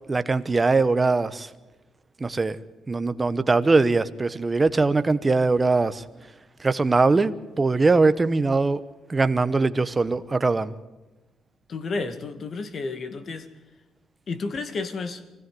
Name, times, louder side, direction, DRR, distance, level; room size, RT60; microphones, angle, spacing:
voice 1, 0.1-1.5 2.2-2.6 2.9-6.0 6.6-8.8 9.1-10.7, right 3 dB, 20° right, 1.1 m, -21 dB
voice 2, 11.7-13.5 14.3-15.3, left 3 dB, 45° left, 2.3 m, -31 dB
25.5 x 16.0 x 7.8 m
cardioid pair, 125°, 0 cm